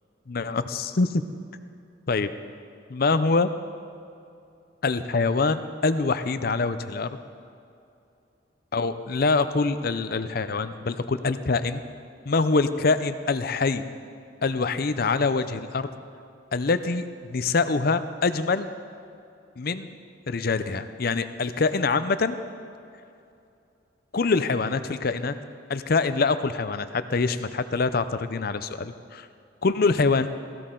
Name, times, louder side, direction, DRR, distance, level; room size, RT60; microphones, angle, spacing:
voice 1, 0.3-1.2 2.1-2.3 2.9-3.5 4.8-7.2 8.7-11.8 12.3-13.8 14.4-15.9 16.5-18.7 19.6-19.9 20.3-22.4 24.1-25.4 25.7-29.3 29.6-30.3, left 4 dB, 55° left, 12 dB, 0.6 m, -24 dB
17.0 x 15.0 x 3.8 m, 2.5 s
head